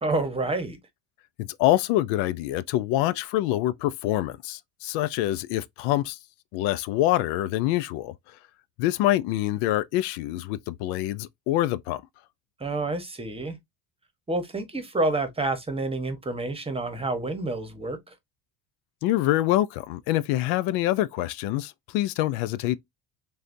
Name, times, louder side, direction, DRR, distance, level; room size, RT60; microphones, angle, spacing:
voice 1, 0.0-0.8 12.6-13.6 14.3-18.1, right 2 dB, 15° right, 1.0 m, -28 dB
voice 2, 1.4-6.2 6.5-8.4 8.8-12.0 19.0-22.8, left 15 dB, 85° left, 0.5 m, -25 dB
6.4 x 2.4 x 2.6 m
cardioid pair, 115°, 39 cm